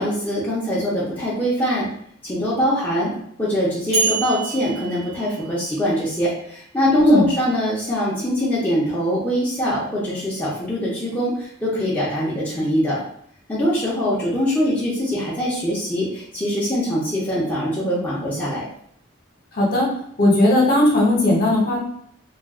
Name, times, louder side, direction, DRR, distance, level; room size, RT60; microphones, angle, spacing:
voice 1, 0.0-1.9 2.2-3.1 3.4-13.0 13.5-18.7, equal, 10° left, -8 dB, 0.6 m, -23 dB
sound 1, 3.9-6.0, right 4 dB, 30° right, 0.7 m, -27 dB
voice 2, 19.5-19.9 20.2-21.8, left 1 dB, 45° left, -4 dB, 0.9 m, -17 dB
2.4 x 2.4 x 3.6 m, 0.66 s
head